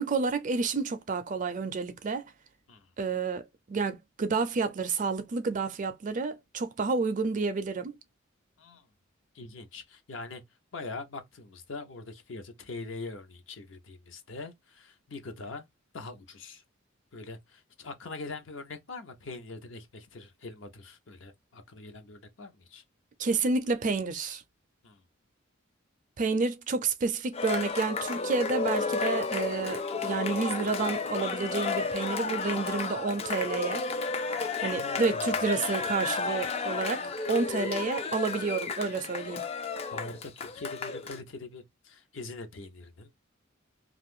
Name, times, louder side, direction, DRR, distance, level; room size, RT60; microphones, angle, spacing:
voice 1, 0.0-2.3 3.0-3.4 3.7-7.9 23.2-24.4 26.2-33.9 34.6-37.0 37.3-39.4, right 4 dB, 40° right, 0.4 m, -30 dB
voice 2, 8.6-8.9 9.3-10.4 10.7-15.7 15.9-16.6 17.1-22.8 24.8-25.0 34.7-35.4 39.8-43.1, left 3 dB, 65° left, 0.7 m, -43 dB
Cheering, 27.3-41.2, left 4 dB, 30° left, 0.4 m, -32 dB
2.5 x 2.4 x 3.5 m
head